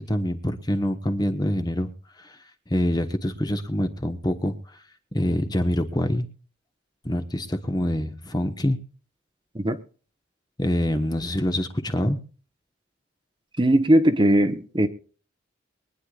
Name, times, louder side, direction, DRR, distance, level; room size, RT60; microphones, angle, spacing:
voice 1, 0.0-1.9 2.2-2.4 2.7-4.5 5.1-6.3 7.0-8.8 10.6-12.2, equal, 20° left, 1.2 m, -25 dB
voice 2, 13.6-14.9, right 1 dB, 25° right, 1.1 m, -19 dB
23.5 x 10.0 x 2.4 m
head